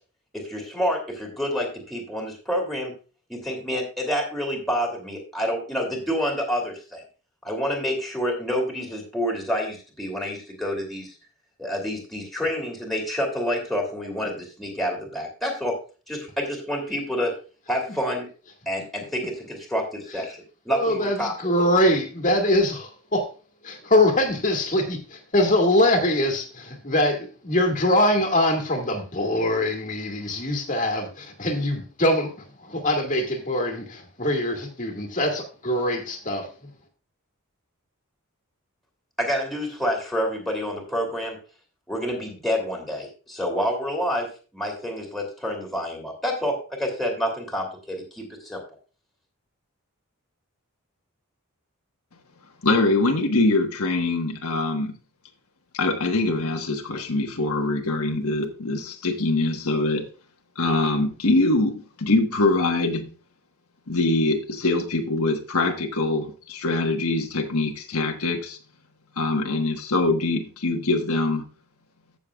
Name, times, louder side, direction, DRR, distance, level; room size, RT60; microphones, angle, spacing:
voice 1, 0.4-2.9 3.3-7.0 7.4-11.1 11.6-15.7 16.1-17.3 17.7-18.3 18.7-21.7 39.2-41.4 41.9-44.3 44.5-48.6, equal, ahead, 2.7 m, -28 dB
voice 2, 20.7-23.3 23.6-32.3 32.6-36.5, left 1 dB, 35° left, 2.0 m, -23 dB
voice 3, 52.6-54.9 55.8-60.0 60.6-63.1 63.9-68.6 69.2-71.4, left 2 dB, 80° left, 1.4 m, -23 dB
15.0 x 6.9 x 2.4 m
head